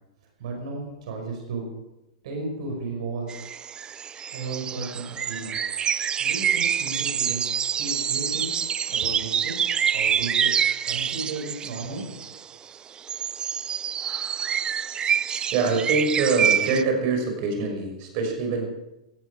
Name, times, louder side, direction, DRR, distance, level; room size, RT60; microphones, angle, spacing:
voice 1, 0.4-1.7 2.2-3.3 4.3-5.6 6.2-7.4 7.8-8.5 8.9-9.5 9.9-10.5 10.8-12.4, right 3 dB, 65° right, 1 dB, 5.8 m, -34 dB
sound 1, 3.3-12.4 13.0-16.8, right 8 dB, 25° right, 0.5 m, -26 dB
voice 2, 15.5-18.7, right 4 dB, 50° right, 3 dB, 6.3 m, -24 dB
18.0 x 14.0 x 5.0 m, 0.93 s
hypercardioid pair, 110°, 4 cm